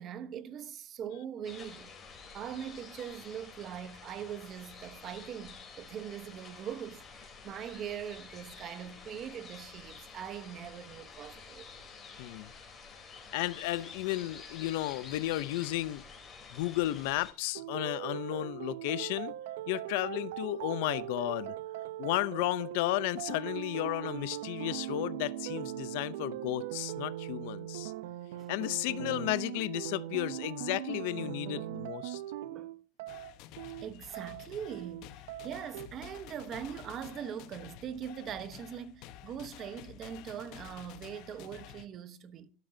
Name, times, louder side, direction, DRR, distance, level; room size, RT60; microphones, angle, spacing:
voice 1, 0.0-1.9 2.3-11.7 28.4-28.5 32.5-32.7 33.8-42.5, right 9 dB, 35° right, 1.0 m, -42 dB
sound 1, 1.4-17.3, left 5 dB, 20° left, 3.6 m, -50 dB
voice 2, 12.2-12.5 13.3-16.0 16.5-19.3 19.7-21.5 22.0-27.9 28.5-32.2, left 17 dB, 70° left, 0.6 m, -33 dB
sound 2, 17.5-35.9, right 14 dB, 80° right, 0.7 m, -40 dB
sound 3, 33.1-41.9, left 12 dB, 55° left, 1.0 m, -50 dB
13.0 x 12.5 x 2.7 m
supercardioid pair, 145°, 0 cm